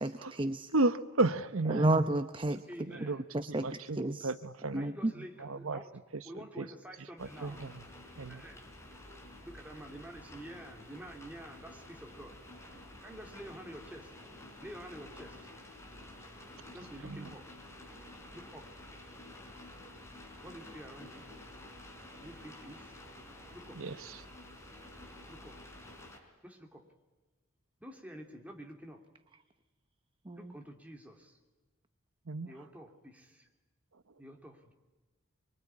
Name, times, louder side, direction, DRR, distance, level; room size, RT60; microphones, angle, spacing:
voice 1, 0.0-0.7 1.7-2.6 3.3-3.7 4.0-4.1 4.7-5.1 30.3-30.4, right 2 dB, 25° right, 10 dB, 0.9 m, -30 dB
voice 2, 0.7-1.9 2.9-4.0 4.2-5.8 6.1-6.7 7.0-7.9 8.2-8.4 17.0-17.3 23.7-24.2 32.3-32.6 33.9-34.0, right 2 dB, 85° right, 12 dB, 1.0 m, -34 dB
voice 3, 2.7-3.2 4.7-5.9 6.2-7.6 8.3-8.7 9.4-12.4 13.0-14.2 14.6-15.5 16.7-17.5 18.3-18.8 20.4-21.3 22.2-23.0 23.5-23.8 25.3-25.6 26.4-26.9 27.8-29.0 30.4-31.4 32.4-33.5 34.2-34.7, right 1 dB, 5° right, 2 dB, 3.1 m, -49 dB
sound 1, 7.2-26.2, left 1 dB, 15° left, 4.4 m, -51 dB
24.5 x 23.5 x 9.8 m, 1.2 s
head